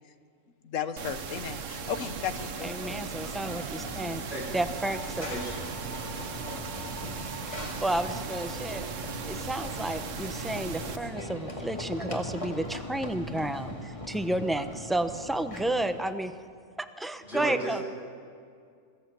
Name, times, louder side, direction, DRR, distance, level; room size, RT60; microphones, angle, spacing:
voice 1, 0.6-2.7, left 8 dB, 70° left, 11 dB, 1.3 m, -34 dB
sound 1, 1.0-11.0, right 6 dB, 70° right, 1.3 m, -38 dB
Run / Train, 1.7-16.1, left 1 dB, 25° left, 2.2 m, -40 dB
voice 2, 2.6-4.2 4.5-5.3 7.5-8.9 9.3-16.3 16.8-17.8, right 1 dB, ahead, 9 dB, 0.5 m, -31 dB
voice 3, 17.2-17.8, right 1 dB, 50° left, -3 dB, 3.6 m, -35 dB
22.0 x 14.5 x 8.3 m, 2.2 s
omnidirectional pair, 1.4 m